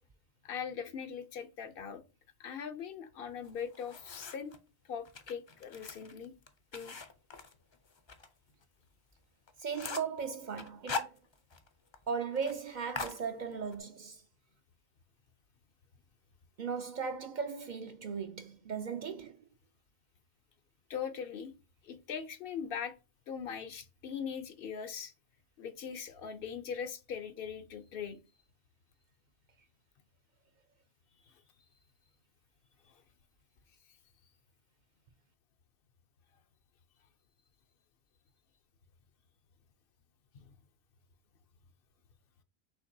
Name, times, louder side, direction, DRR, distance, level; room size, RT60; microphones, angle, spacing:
voice 1, 0.4-2.0 2.4-4.5 4.9-6.3 6.7-7.0 20.9-21.5 21.8-22.9 23.3-25.1 25.6-28.2 31.3-31.4 32.9-33.0 40.3-40.4, left 7 dB, 65° left, 0.8 m, -40 dB
sound 1, 3.4-4.6 5.0-8.3 8.6-8.7 9.1-9.2 9.5-10.2 10.6-11.7 11.9-12.0 12.3-12.6 12.9-13.8, left 4 dB, 35° left, 0.5 m, -41 dB
voice 2, 9.6-11.1 12.1-14.2 16.6-19.4, right 6 dB, 55° right, 0.6 m, -37 dB
5.8 x 3.2 x 2.6 m
omnidirectional pair, 1.1 m